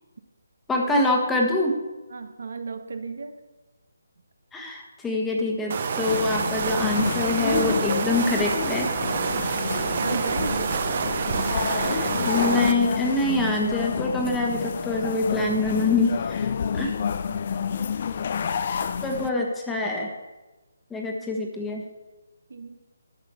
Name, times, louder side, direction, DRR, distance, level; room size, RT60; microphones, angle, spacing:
voice 1, 0.7-1.8 4.5-8.9 11.5-16.9 19.0-20.1 20.9-21.8, left 2 dB, 5° left, 0 dB, 1.4 m, -25 dB
voice 2, 2.1-3.4 9.3-10.8 17.0-17.6 21.2-21.4 22.5-22.8, right 4 dB, 65° right, 8 dB, 1.2 m, -35 dB
sound 1, 5.7-12.7, right 6 dB, 40° right, 1.0 m, -27 dB
sound 2, 6.1-19.3, left 7 dB, 40° left, 0.6 m, -29 dB
11.5 x 6.2 x 6.9 m, 1.1 s
figure-of-eight pair, 160°, 0 cm